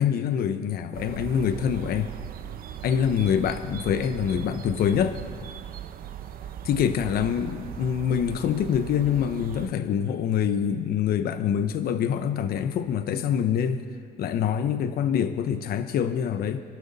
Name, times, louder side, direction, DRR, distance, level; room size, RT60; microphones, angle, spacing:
voice 1, 0.0-2.1 2.8-5.2 6.7-13.8 14.2-16.6, left 8 dB, 65° left, 9 dB, 1.0 m, -25 dB
sound 1, 0.9-9.7, right 10 dB, 60° right, 0.8 m, -39 dB
26.5 x 12.5 x 4.2 m, 2.3 s
cardioid pair, 110°, 17 cm